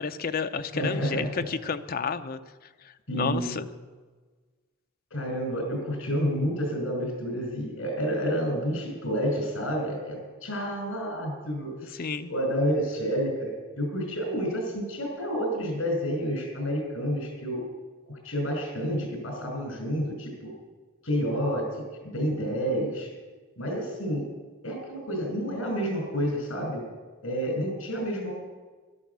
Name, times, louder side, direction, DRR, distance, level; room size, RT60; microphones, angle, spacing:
voice 1, 0.0-2.4 3.2-3.7 12.0-12.3, left 5 dB, 45° left, 9 dB, 0.6 m, -30 dB
voice 2, 0.7-1.3 3.1-3.6 5.1-17.6 18.1-20.5 21.0-23.1 23.6-24.3 24.6-26.8 27.2-28.3, equal, 70° left, 2 dB, 5.3 m, -29 dB
12.5 x 11.5 x 6.8 m, 1.4 s
head